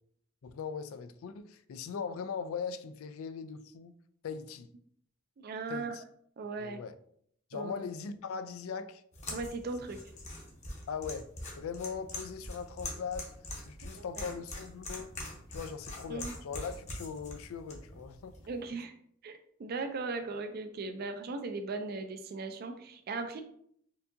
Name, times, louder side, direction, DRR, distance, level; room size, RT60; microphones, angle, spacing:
voice 1, 0.4-4.0 4.2-4.7 5.7-6.0 6.6-7.0 7.5-9.0 10.9-11.3 11.6-13.3 13.7-15.1 15.5-18.3, left 6 dB, 90° left, 0.3 m, -40 dB
voice 2, 5.4-6.0 6.4-6.8 7.5-7.7 9.3-10.0 13.9-14.2 16.1-16.3 18.5-19.0 19.2-23.4, right 3 dB, 50° right, 0.4 m, -38 dB
sound 1, 9.1-18.7, left 2 dB, 35° left, 0.8 m, -44 dB
4.5 x 2.7 x 2.5 m
head